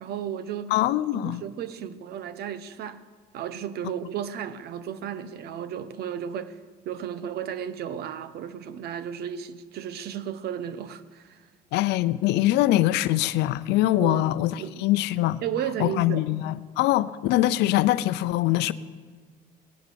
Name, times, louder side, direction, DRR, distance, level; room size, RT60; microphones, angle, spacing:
voice 1, 0.0-0.8 1.1-3.0 3.3-6.6 6.8-11.4 14.0-14.3 14.5-14.8 15.4-16.3, right 9 dB, 70° right, 1.0 m, -34 dB
voice 2, 0.7-1.4 11.7-15.4 15.8-18.7, left 15 dB, 85° left, 0.6 m, -23 dB
16.5 x 11.5 x 7.0 m
cardioid pair, 110°, 17 cm